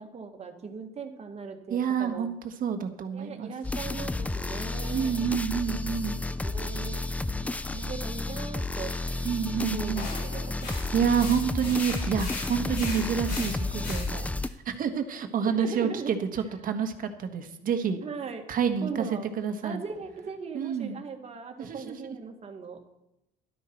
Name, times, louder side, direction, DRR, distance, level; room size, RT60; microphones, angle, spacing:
voice 1, 0.0-2.3 3.1-5.1 5.7-5.8 6.4-7.0 7.6-8.9 9.6-10.9 15.5-16.1 18.0-18.5 18.8-19.3 19.6-22.8, right 5 dB, 40° right, 5 dB, 1.8 m, -39 dB
voice 2, 1.7-3.5 4.9-6.2 9.2-10.1 10.9-14.3 14.6-18.0 18.5-19.8 20.5-21.0 21.6-22.2, right 7 dB, 55° right, 7 dB, 1.5 m, -28 dB
sound 1, 3.6-14.5, left 2 dB, 10° left, 0.5 m, -32 dB
sound 2, 9.9-14.5, left 3 dB, 80° left, 5.1 m, -40 dB
13.0 x 12.0 x 4.5 m, 0.85 s
cardioid pair, 110°, 17 cm